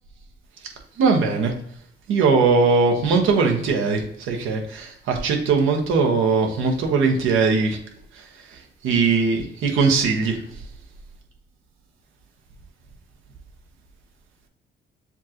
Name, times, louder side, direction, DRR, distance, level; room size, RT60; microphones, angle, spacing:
voice 1, 1.0-1.5 2.1-4.0 4.3-7.8 8.8-10.4, right 4 dB, 85° right, 2 dB, 1.1 m, -20 dB
7.2 x 2.5 x 2.9 m, 0.71 s
cardioid pair, 90°, 20 cm